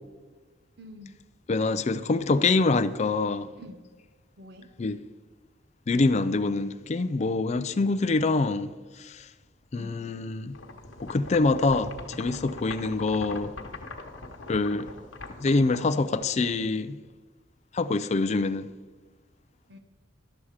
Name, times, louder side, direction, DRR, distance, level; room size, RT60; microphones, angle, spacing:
voice 1, 0.8-1.2 3.6-3.8 4.4-4.7 9.7-10.0 19.7-19.8, left 1 dB, 55° right, 0.8 m, -46 dB
voice 2, 1.5-3.5 4.8-4.9 5.9-8.7 9.0-9.2 9.7-10.6 11.0-13.5 14.5-14.9 15.4-17.0 17.7-18.7, left 3 dB, 35° left, 0.4 m, -25 dB
sound 1, 10.5-16.7, left 3 dB, 75° left, 1.2 m, -41 dB
12.0 x 7.2 x 4.8 m
head